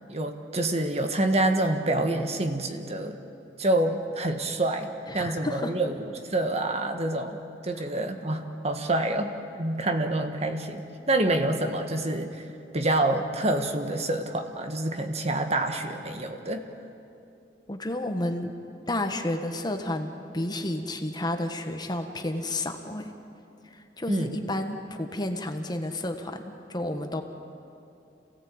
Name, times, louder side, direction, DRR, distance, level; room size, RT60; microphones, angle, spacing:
voice 1, 0.1-3.2 3.6-9.3 9.6-12.4 12.7-16.7 24.1-24.3, right 1 dB, 40° right, 6 dB, 1.6 m, -27 dB
voice 2, 5.1-5.7 17.7-18.5 18.9-23.1 23.6-27.2, left 1 dB, 25° left, 5 dB, 1.5 m, -31 dB
27.5 x 17.5 x 8.7 m, 2.7 s
head